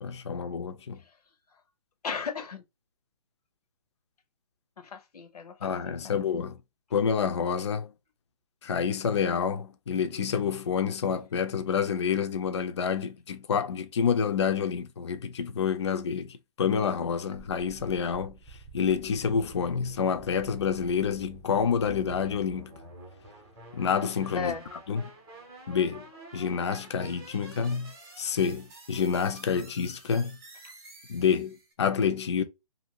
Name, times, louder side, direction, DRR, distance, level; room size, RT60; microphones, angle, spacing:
voice 1, 0.0-1.0 5.6-6.6 6.9-7.9 8.6-18.4 18.7-22.7 23.7-25.1 25.7-26.1 26.3-27.9 28.2-30.4 31.1-32.4, left 6 dB, 45° left, 0.4 m, -28 dB
voice 2, 2.0-2.6 4.8-6.2 24.3-24.6, left 6 dB, 90° left, 0.9 m, -36 dB
sound 1, 17.3-31.7, right 3 dB, 10° right, 0.7 m, -48 dB
2.7 x 2.6 x 2.8 m
hypercardioid pair, 170°, 19 cm